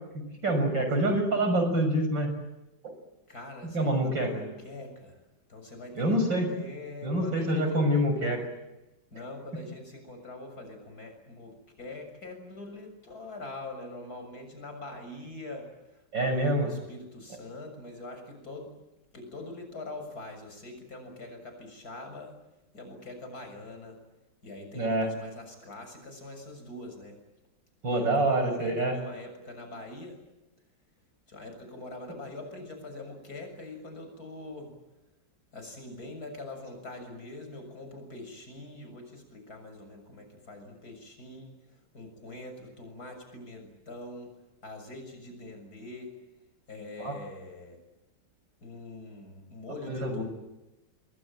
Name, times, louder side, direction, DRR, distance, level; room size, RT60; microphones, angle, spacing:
voice 1, 0.1-2.3 3.6-4.3 5.9-6.5 7.0-8.4 16.1-16.7 24.7-25.1 27.8-28.9 47.0-47.1 49.9-50.2, right 1 dB, 85° right, 6 dB, 7.2 m, -26 dB
voice 2, 3.3-5.2 5.5-8.4 9.1-18.7 19.1-22.3 22.7-24.0 24.4-27.2 27.9-30.2 31.3-34.7 35.5-41.5 41.9-44.3 44.6-46.1 46.7-47.8 48.6-50.2, left 2 dB, 55° left, 5 dB, 7.4 m, -43 dB
27.0 x 23.0 x 9.1 m, 0.97 s
omnidirectional pair, 2.0 m